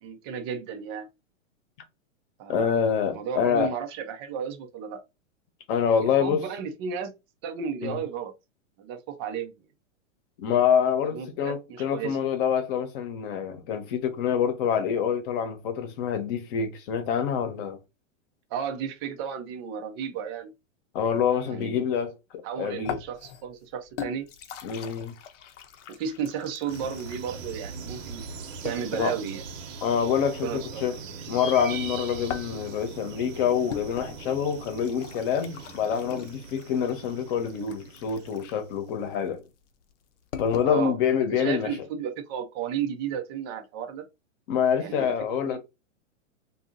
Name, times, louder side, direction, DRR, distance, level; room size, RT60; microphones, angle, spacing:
voice 1, 0.0-1.1 2.4-2.7 3.1-5.0 6.0-7.1 7.4-8.3 8.8-9.6 11.1-12.2 18.5-20.5 21.5-21.8 22.4-24.3 25.9-28.2 28.6-29.4 30.4-30.8 40.6-41.0 41.3-44.0 44.8-45.6, right 7 dB, 20° right, 0.3 m, -33 dB
voice 2, 2.5-3.7 5.7-6.4 7.8-8.0 10.4-17.8 20.9-23.0 24.6-25.1 28.9-29.1 29.8-31.0 31.3-39.4 40.4-41.7 44.5-45.6, left 7 dB, 45° left, 0.9 m, -26 dB
sound 1, 22.8-29.3 32.0-40.7, left 9 dB, 70° left, 0.7 m, -41 dB
sound 2, 26.7-38.8, right 4 dB, 85° right, 1.0 m, -41 dB
2.7 x 2.5 x 3.6 m
hypercardioid pair, 140°, 38 cm